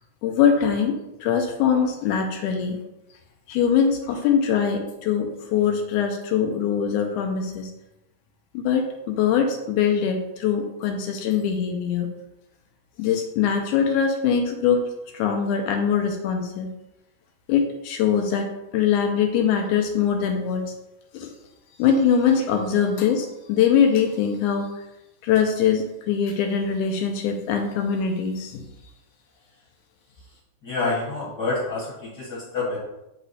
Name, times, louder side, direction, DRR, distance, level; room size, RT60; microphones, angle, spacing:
voice 1, 0.2-2.8 3.5-7.7 8.5-12.1 13.0-14.9 15.1-16.7 17.5-20.7 21.1-21.3 21.8-24.7 25.2-28.6, left 7 dB, 85° left, 4 dB, 2.1 m, -22 dB
voice 2, 30.6-32.8, left 3 dB, 40° left, -7 dB, 1.6 m, -27 dB
7.7 x 3.1 x 4.1 m, 0.92 s
omnidirectional pair, 3.5 m